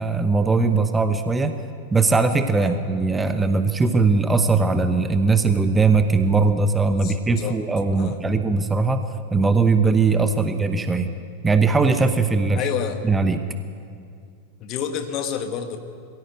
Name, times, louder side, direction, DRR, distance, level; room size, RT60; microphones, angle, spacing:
voice 1, 0.0-1.6 1.9-9.0 9.3-11.1 11.4-12.6 13.0-13.4, right 4 dB, 10° right, 9 dB, 1.0 m, -20 dB
voice 2, 6.8-7.6 7.9-8.2 10.3-10.5 12.5-13.0 14.6-15.8, left 8 dB, 40° left, 6 dB, 1.9 m, -30 dB
22.5 x 15.5 x 8.1 m, 2.2 s
figure-of-eight pair, 90°, 0 cm